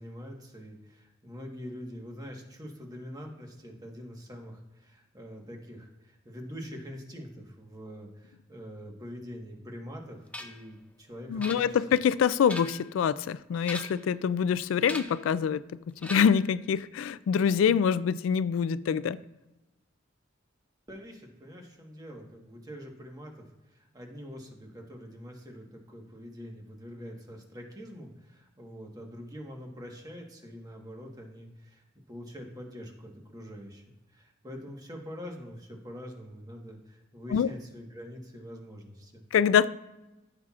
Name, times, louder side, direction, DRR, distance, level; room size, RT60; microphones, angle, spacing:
voice 1, 0.0-11.8 20.9-23.5 23.7-33.8 34.1-39.3, equal, 20° right, 1.3 m, -44 dB
sound 1, 10.3-10.7 11.4-12.0 12.3-12.9 13.6-14.1 14.8-15.3 16.0-16.5, left 1 dB, 5° left, 0.5 m, -40 dB
voice 2, 11.3-19.2 37.3-37.5 39.3-39.7, left 7 dB, 80° left, 0.3 m, -25 dB
14.0 x 5.7 x 2.4 m
head